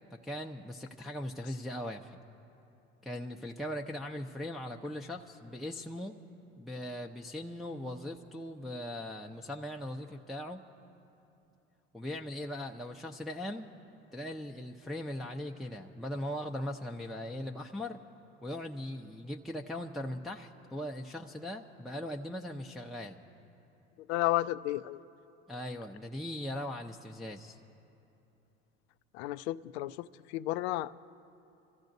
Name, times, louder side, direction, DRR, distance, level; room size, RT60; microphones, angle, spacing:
voice 1, 0.1-2.2 3.0-6.2 6.6-10.6 11.9-13.7 14.1-18.0 18.4-23.2 25.5-27.6, left 1 dB, ahead, 0 dB, 0.7 m, -39 dB
voice 2, 24.1-25.0 29.1-30.9, left 16 dB, 80° left, 15 dB, 0.5 m, -32 dB
28.0 x 14.5 x 2.7 m, 2.8 s
hypercardioid pair, 70°, 32 cm